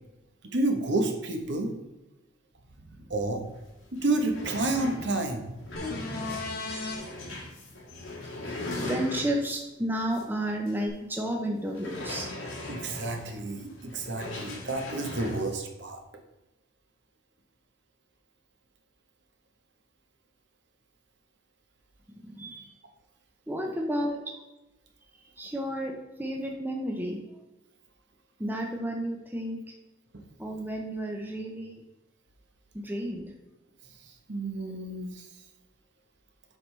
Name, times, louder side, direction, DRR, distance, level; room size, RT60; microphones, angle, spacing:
voice 1, 0.4-1.7 2.9-3.4 3.9-5.5 8.2-8.4 8.7-8.8 12.7-16.0 30.1-30.2 34.0-35.3, right 2 dB, 60° right, 4 dB, 1.0 m, -30 dB
sound 1, 3.5-3.6 3.9-9.6 10.1-10.3 10.7-10.8 11.7-15.5, left 1 dB, 80° left, 1.7 m, -39 dB
sound 2, 5.8-7.0 10.9-11.0, left 3 dB, 50° left, 1.2 m, -34 dB
voice 2, 8.4-12.3 22.2-22.7 23.5-24.4 25.4-25.9 26.2-27.2 28.4-29.6 30.4-31.8 32.7-33.3, equal, 10° right, 1 dB, 0.7 m, -32 dB
7.6 x 5.6 x 3.3 m, 1.0 s
head